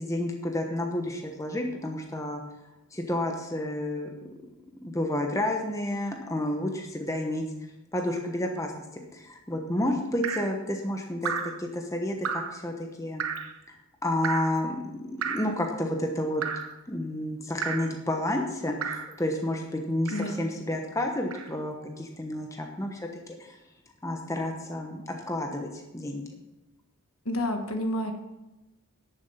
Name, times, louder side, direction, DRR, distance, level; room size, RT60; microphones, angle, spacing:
voice 1, 0.0-2.4 2.9-4.1 4.8-7.4 7.9-8.7 9.1-11.3 11.6-13.2 13.7-16.4 16.9-23.6 24.0-25.7 25.9-26.2, left 1 dB, 15° left, 2 dB, 1.1 m, -30 dB
Drip, 10.2-10.6 11.2-11.6 12.2-12.6 13.2-13.5 14.2-14.6 15.2-15.6 16.4-16.8 17.6-17.9 18.8-19.1 20.1-20.4 21.3-21.5, right 6 dB, 75° right, 1.0 m, -32 dB
voice 2, 27.2-28.1, left 1 dB, 75° left, 5 dB, 1.6 m, -29 dB
10.5 x 7.1 x 5.8 m, 0.99 s
head